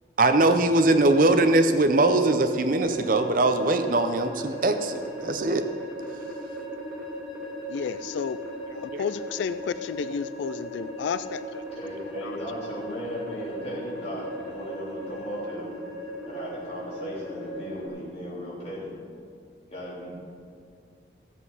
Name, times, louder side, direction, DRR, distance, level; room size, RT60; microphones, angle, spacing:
voice 1, 0.2-5.6 8.9-9.0, right 2 dB, 50° right, 8 dB, 0.7 m, -21 dB
sound 1, 2.9-17.9, equal, ahead, 2.2 m, -37 dB
voice 2, 7.7-8.4 8.7-11.6, left 6 dB, 85° left, 14 dB, 0.3 m, -31 dB
voice 3, 11.7-15.7 16.3-18.9 19.7-20.2, left 1 dB, 35° left, -7 dB, 3.6 m, -36 dB
15.0 x 8.0 x 5.6 m, 2.3 s
head